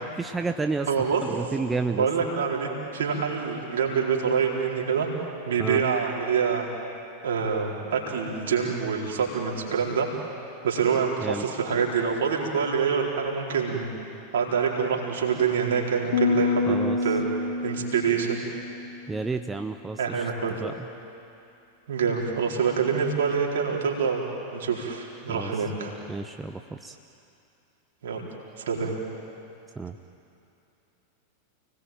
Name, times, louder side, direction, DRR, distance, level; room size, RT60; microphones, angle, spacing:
voice 1, 0.2-0.9 1.2-2.1 5.6-5.8 11.2-11.4 16.7-17.0 19.1-20.3 20.6-20.9 25.3-25.5 26.1-27.0 29.8-30.0, right 3 dB, 10° right, 7 dB, 0.9 m, -31 dB
voice 2, 0.9-1.2 2.0-5.1 5.4-6.7 7.2-10.1 10.6-13.9 14.3-16.8 17.0-17.2 17.6-18.5 20.0-20.6 21.9-24.3 24.5-25.9 28.0-28.2 28.6-29.0, right 6 dB, 60° right, -1 dB, 4.4 m, -26 dB
sound 1, 16.1-19.5, left 4 dB, 65° left, 4.5 m, -28 dB
29.5 x 19.5 x 9.0 m, 2.7 s
figure-of-eight pair, 90°, 0 cm